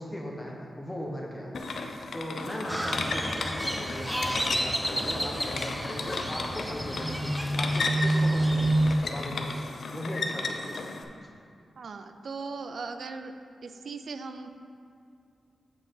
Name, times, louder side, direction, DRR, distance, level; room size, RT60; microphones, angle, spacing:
voice 1, 0.0-1.7 2.1-7.3 7.6-10.9 11.2-11.3, equal, 15° left, -2 dB, 1.3 m, -38 dB
sound 1, 1.5-11.0, left 3 dB, 75° left, 0.6 m, -34 dB
Crow, 2.7-9.0, right 1 dB, 5° right, 0.7 m, -29 dB
voice 2, 11.8-13.4 13.6-14.6, right 4 dB, 70° right, 8 dB, 0.5 m, -39 dB
7.8 x 5.9 x 4.4 m, 2.4 s
wide cardioid pair, 85°, 0 cm